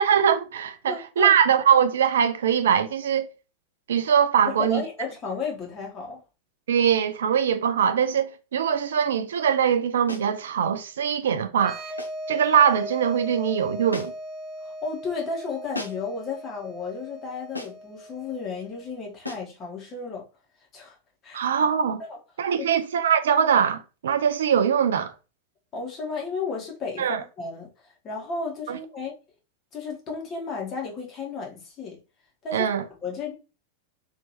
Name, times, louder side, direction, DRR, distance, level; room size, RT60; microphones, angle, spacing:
voice 1, 0.0-3.3 3.9-4.8 6.7-11.8 12.3-14.1 21.3-22.0 22.4-25.1 27.0-27.2 28.7-28.8 32.5-32.8, right 8 dB, 65° right, 0.4 m, -22 dB
voice 2, 0.9-1.3 4.4-6.2 14.6-20.2 20.7-20.9 21.2-21.5 22.0-22.2 22.7-22.8 25.7-27.7 28.0-29.2 29.7-32.0 32.4-32.7 33.0-33.3, left 4 dB, 30° left, 1.2 m, -33 dB
sound 1, 10.1-10.4 12.0-12.3 13.9-14.3 15.7-16.2 17.5-17.9 19.2-19.6, left 2 dB, 85° left, 0.5 m, -37 dB
sound 2, 11.5-19.0, equal, 15° right, 1.1 m, -38 dB
3.1 x 2.9 x 2.7 m
figure-of-eight pair, 90°, 0 cm